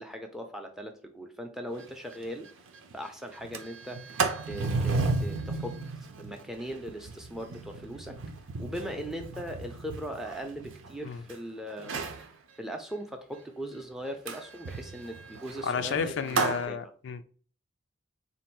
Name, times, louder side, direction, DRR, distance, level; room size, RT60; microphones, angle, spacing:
voice 1, 0.0-2.5 2.9-4.0 4.5-5.8 6.2-8.2 8.6-12.0 12.6-16.4 16.7-16.8, equal, ahead, 0.4 m, -39 dB
Sliding door, 1.8-1.9 2.2-2.3 2.7-3.0 3.3-11.3 11.8-12.3 14.3-16.6, right 3 dB, 85° right, 0.6 m, -34 dB
voice 2, 15.6-17.2, left 6 dB, 65° left, 0.3 m, -31 dB
3.9 x 2.5 x 4.4 m
head